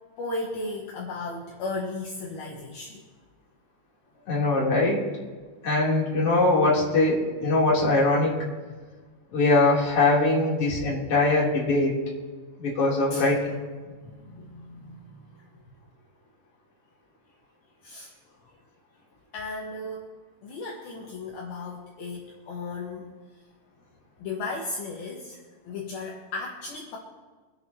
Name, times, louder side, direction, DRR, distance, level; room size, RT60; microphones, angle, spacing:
voice 1, 0.2-3.0 13.1-13.3 13.9-15.2 17.8-18.1 19.3-20.1 20.4-23.1 24.2-27.0, left 3 dB, 65° left, -3 dB, 3.0 m, -35 dB
voice 2, 4.3-5.0 5.6-8.4 9.3-11.9 12.6-13.4, left 2 dB, 35° left, -5 dB, 3.7 m, -22 dB
24.5 x 11.0 x 2.9 m, 1.4 s
omnidirectional pair, 5.1 m